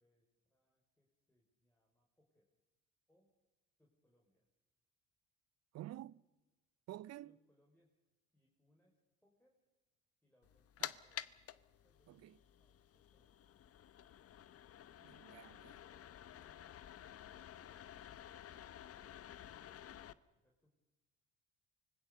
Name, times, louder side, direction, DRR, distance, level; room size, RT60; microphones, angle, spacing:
voice 1, 0.0-2.5 3.1-3.3 3.8-4.5 7.2-8.0 8.3-9.6 10.2-11.4 11.8-13.6 20.3-20.7, left 1 dB, 5° left, 4.8 m, -77 dB
voice 2, 5.7-6.2 6.9-7.4 10.8-10.9 12.1-12.4 15.0-15.8, right 14 dB, 50° right, 0.6 m, -50 dB
sound 1, 10.4-20.1, left 10 dB, 45° left, 1.0 m, -51 dB
25.5 x 19.5 x 6.8 m
hypercardioid pair, 60°, 34 cm